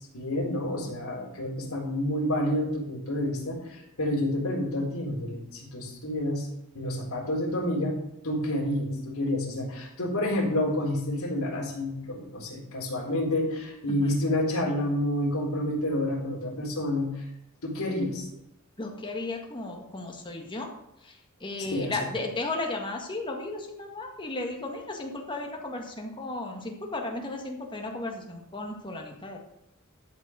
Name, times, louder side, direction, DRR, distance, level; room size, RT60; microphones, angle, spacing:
voice 1, 0.1-6.5 6.7-8.0 8.2-17.3 17.6-18.3 21.6-22.1, left 1 dB, 75° left, -2 dB, 3.8 m, -29 dB
voice 2, 18.8-20.7 21.0-29.4, left 2 dB, 20° left, 2 dB, 1.7 m, -35 dB
13.0 x 5.4 x 6.3 m, 0.83 s
head